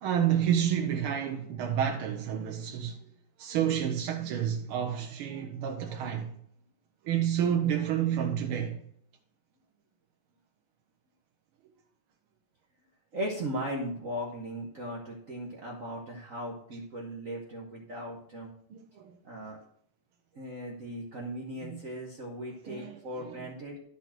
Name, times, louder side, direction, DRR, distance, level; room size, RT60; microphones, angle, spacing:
voice 1, 0.0-3.1 3.4-6.3 7.0-8.8 18.7-19.2 21.6-21.8 22.6-23.5, right 9 dB, 80° right, 1.7 m, -30 dB
voice 2, 13.1-18.5 19.2-19.6 20.3-23.8, equal, 45° right, 1.4 m, -37 dB
11.5 x 4.2 x 5.9 m
omnidirectional pair, 2.4 m